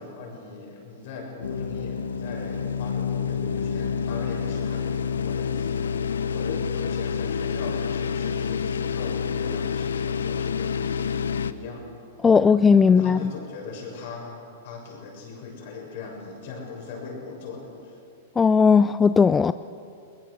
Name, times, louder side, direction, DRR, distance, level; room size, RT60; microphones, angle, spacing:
voice 1, 0.0-5.8 6.3-11.1 11.4-12.0 12.8-18.0, left 4 dB, 60° left, 0 dB, 7.0 m, -39 dB
sound 1, 1.4-11.5, left 6 dB, 85° left, 0.8 m, -28 dB
voice 2, 12.2-13.3 18.4-19.5, left 5 dB, 15° left, 14 dB, 0.4 m, -17 dB
22.0 x 19.5 x 6.6 m, 2.5 s
hypercardioid pair, 115°, 0 cm